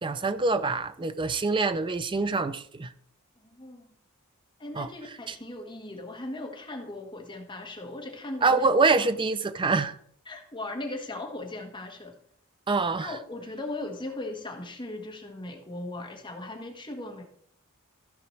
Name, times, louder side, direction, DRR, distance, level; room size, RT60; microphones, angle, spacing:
voice 1, 0.0-2.9 4.8-4.9 5.3-5.4 8.4-9.9 12.7-13.1, right 3 dB, 25° right, 0.5 m, -25 dB
voice 2, 3.4-3.9 4.6-8.7 10.2-12.1 12.9-17.2, left 2 dB, 20° left, 1.6 m, -38 dB
14.0 x 5.1 x 4.5 m
head